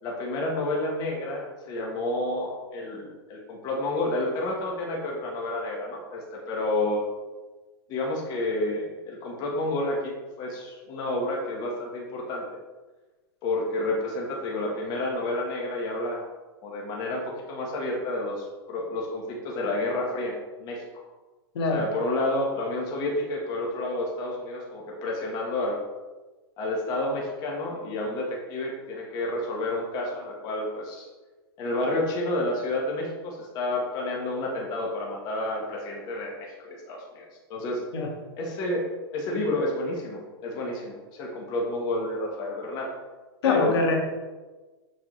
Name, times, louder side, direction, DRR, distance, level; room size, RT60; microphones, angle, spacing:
voice 1, 0.0-7.0 7.9-12.4 13.4-16.2 16.6-21.0 21.7-25.8 26.6-31.1 31.6-37.8 38.4-42.9 43.4-43.7, left 1 dB, 30° left, -1 dB, 1.2 m, -30 dB
voice 2, 43.4-44.0, left 3 dB, 80° left, 1 dB, 1.5 m, -24 dB
6.3 x 6.2 x 3.1 m, 1.2 s
supercardioid pair, 160°, 13 cm